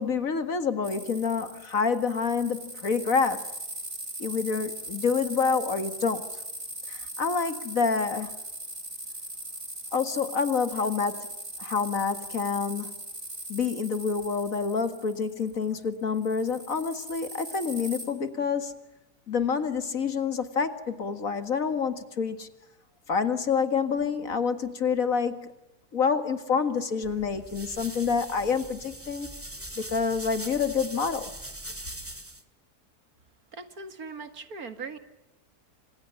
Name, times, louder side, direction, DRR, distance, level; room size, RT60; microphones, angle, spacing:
voice 1, 0.0-3.5 4.2-6.3 6.9-8.3 9.9-11.3 11.6-12.9 13.5-18.8 19.3-22.5 23.1-25.5 25.9-29.3 29.8-31.3, left 5 dB, 55° left, 10 dB, 2.2 m, -27 dB
sound 1, 0.8-15.8 16.2-18.0, right 1 dB, 45° right, 5.2 m, -40 dB
sound 2, 27.0-32.4, right 1 dB, 10° right, 1.9 m, -41 dB
voice 2, 33.5-35.0, right 4 dB, 65° right, 9 dB, 2.4 m, -39 dB
30.0 x 26.0 x 7.1 m, 0.95 s
omnidirectional pair, 1.7 m